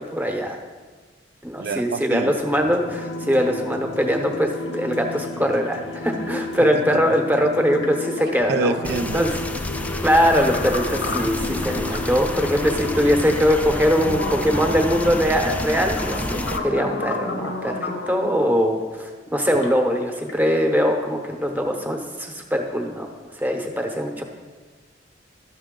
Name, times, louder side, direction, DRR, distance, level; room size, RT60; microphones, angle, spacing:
voice 1, 0.1-0.6 1.4-9.4 10.0-23.1 23.4-24.2, equal, 10° right, 0.9 m, -22 dB
voice 2, 1.6-2.4 6.8-6.9 8.5-9.2, right 4 dB, 60° right, 0.4 m, -26 dB
sound 1, 2.5-15.2, left 2 dB, 60° left, 0.6 m, -34 dB
sound 2, 4.6-4.7 4.9-5.7 7.4-7.5 7.8-12.3 12.8-12.9 13.6-18.4 19.3-19.8 20.1-20.4, left 2 dB, 90° left, 1.0 m, -32 dB
sound 3, 8.8-16.6, left 1 dB, 10° left, 0.3 m, -30 dB
12.5 x 6.2 x 3.7 m
head